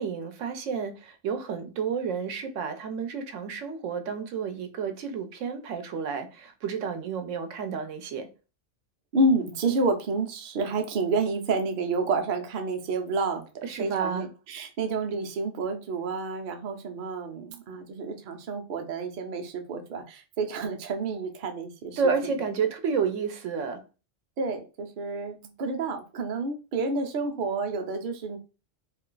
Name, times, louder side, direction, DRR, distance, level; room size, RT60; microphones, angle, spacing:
voice 1, 0.0-8.3 13.6-14.3 22.0-23.8, right 6 dB, 90° right, 1.0 m, -30 dB
voice 2, 9.1-13.4 13.8-22.4 24.4-28.4, right 3 dB, 50° right, 0.7 m, -29 dB
2.5 x 2.4 x 3.7 m
omnidirectional pair, 1.2 m